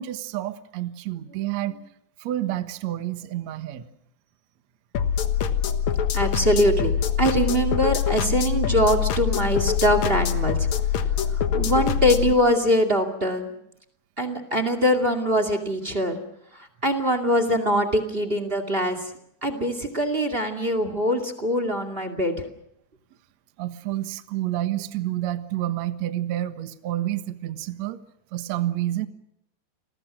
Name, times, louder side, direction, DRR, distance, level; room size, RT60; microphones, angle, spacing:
voice 1, 0.0-1.7 2.2-3.9 23.6-28.0 28.3-29.1, right 13 dB, 70° right, 10 dB, 1.6 m, -29 dB
sound 1, 4.9-12.3, left 8 dB, 65° left, 1.9 m, -24 dB
voice 2, 6.1-6.9 7.2-13.5 14.2-16.2 16.5-19.1 19.4-22.5, equal, 25° right, 10 dB, 1.2 m, -23 dB
30.0 x 22.0 x 6.2 m, 0.76 s
omnidirectional pair, 5.1 m